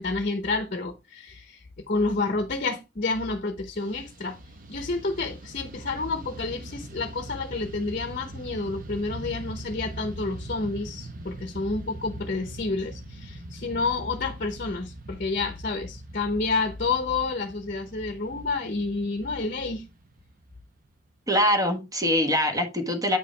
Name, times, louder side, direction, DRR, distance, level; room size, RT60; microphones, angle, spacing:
voice 1, 0.0-4.4 4.7-19.9, left 3 dB, 45° left, 0.8 m, -29 dB
Fixed-wing aircraft airplane, 3.7-21.2, right 1 dB, 50° right, 1.0 m, -42 dB
voice 2, 21.3-23.2, left 1 dB, 20° right, 1.3 m, -23 dB
8.5 x 4.9 x 3.2 m
head